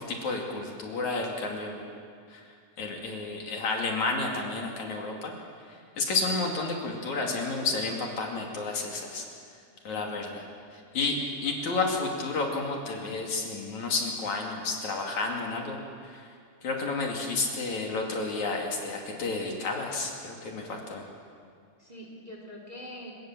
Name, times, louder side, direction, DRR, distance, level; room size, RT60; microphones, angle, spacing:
voice 1, 0.0-1.8 2.3-2.5 2.8-5.3 5.7-9.2 9.9-10.4 10.7-11.2 11.4-16.2 16.6-21.1, left 3 dB, 60° left, 0 dB, 3.8 m, -31 dB
voice 2, 11.6-11.9 12.9-13.2 21.8-23.3, equal, 10° right, 0 dB, 3.5 m, -45 dB
30.0 x 18.5 x 7.4 m, 2.2 s
omnidirectional pair, 3.8 m